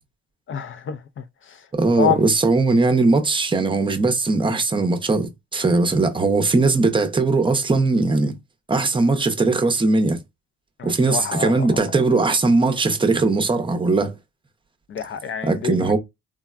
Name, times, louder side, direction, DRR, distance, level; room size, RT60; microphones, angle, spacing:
voice 1, 0.5-1.2 2.0-2.2 10.8-11.8 14.9-15.9, left 8 dB, 45° left, 0.4 m, -27 dB
voice 2, 1.8-8.3 8.7-10.2 10.8-14.1 15.4-16.0, right 3 dB, 15° right, 0.6 m, -19 dB
3.4 x 2.1 x 2.3 m
cardioid pair, 90°, 30 cm